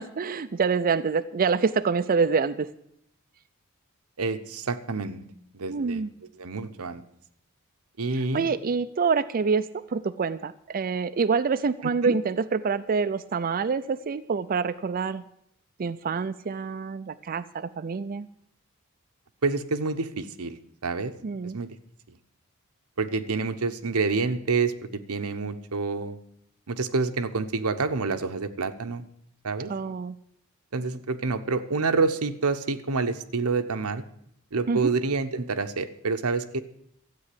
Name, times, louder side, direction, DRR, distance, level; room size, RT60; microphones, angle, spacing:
voice 1, 0.0-2.7 5.7-6.1 8.1-15.2 15.8-18.3 21.2-21.6 29.7-30.1 34.7-34.9, right 5 dB, 40° right, 10 dB, 0.4 m, -26 dB
voice 2, 4.2-5.2 5.5-6.1 6.4-7.0 8.0-8.5 12.0-12.1 19.4-20.6 20.8-21.1 21.4-21.7 23.0-26.2 26.7-29.0 29.4-29.7 30.7-34.0 34.5-36.6, right 4 dB, 90° right, 9 dB, 1.0 m, -28 dB
13.5 x 8.5 x 8.4 m, 0.74 s
head